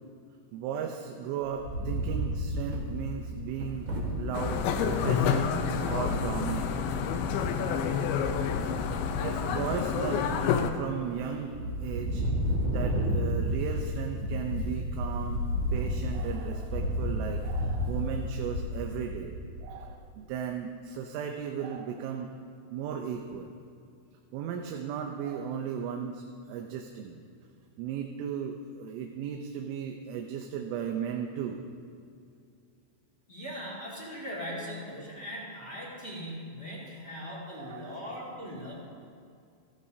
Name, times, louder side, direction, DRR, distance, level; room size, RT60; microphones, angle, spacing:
voice 1, 0.5-3.9 4.2-7.0 7.6-8.1 9.2-10.5 10.7-12.2 12.7-22.3 22.7-23.5 24.3-27.2 27.8-31.6 37.6-38.0, right 8 dB, 80° right, 3 dB, 3.2 m, -36 dB
Wind, 1.4-4.5 5.1-5.2 5.4-5.7 7.2-7.8 8.3-8.8 9.1-10.3 10.8-11.2 11.5-19.7, equal, 45° right, 2.7 m, -32 dB
sound 1, 4.3-10.7, left 6 dB, 80° left, 2.9 m, -28 dB
voice 2, 9.5-9.8 33.3-38.7, equal, 25° left, -5 dB, 1.3 m, -40 dB
29.0 x 12.0 x 2.8 m, 2.4 s
omnidirectional pair, 5.8 m